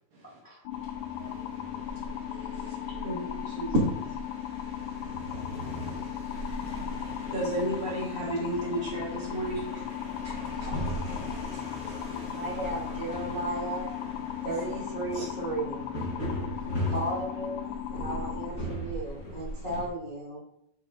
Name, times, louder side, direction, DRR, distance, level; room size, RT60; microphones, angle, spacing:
sound 1, 0.7-18.5, left 12 dB, 80° left, 2.0 m, -37 dB
sound 2, 0.7-19.9, equal, 40° left, 1.0 m, -39 dB
voice 1, 1.2-1.7 2.2-3.0 5.6-6.2 10.7-11.4 11.7-11.8 12.1-12.3 15.1-15.2, right 2 dB, 65° right, -3 dB, 2.5 m, -49 dB
voice 2, 7.3-9.4 10.2-10.3, right 1 dB, 35° right, -7 dB, 3.1 m, -30 dB
voice 3, 12.3-13.9 14.4-15.8 16.9-20.4, right 2 dB, 15° left, -8 dB, 1.9 m, -35 dB
8.2 x 6.3 x 2.7 m, 0.77 s
omnidirectional pair, 4.3 m